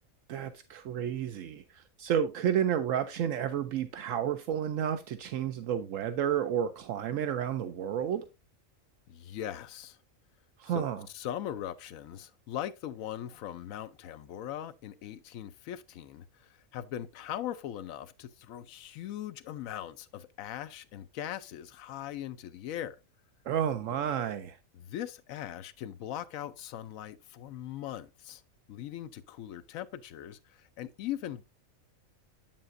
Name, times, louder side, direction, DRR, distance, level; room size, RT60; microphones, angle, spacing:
voice 1, 0.3-8.2 10.6-11.1 23.5-24.6, right 9 dB, 75° right, 1.0 m, -31 dB
voice 2, 9.1-10.0 10.7-23.0 24.7-28.4 28.7-31.4, left 11 dB, 80° left, 1.0 m, -40 dB
7.8 x 7.3 x 2.5 m
omnidirectional pair, 1.4 m